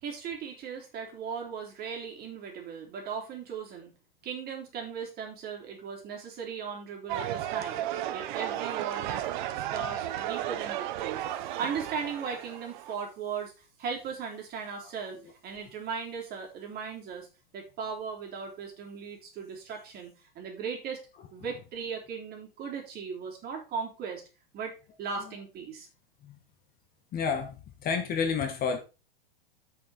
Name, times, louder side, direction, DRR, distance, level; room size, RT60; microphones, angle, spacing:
voice 1, 0.0-3.9 4.2-7.8 8.1-9.3 9.6-15.2 15.4-17.3 17.5-21.0 21.3-24.2 24.5-25.9, right 6 dB, 30° right, 3.9 m, -37 dB
sound 1, 7.1-12.9, right 12 dB, 55° right, 1.1 m, -34 dB
voice 2, 27.1-28.8, left 6 dB, 30° left, 2.0 m, -30 dB
8.5 x 6.7 x 4.5 m
hypercardioid pair, 120°, 30 cm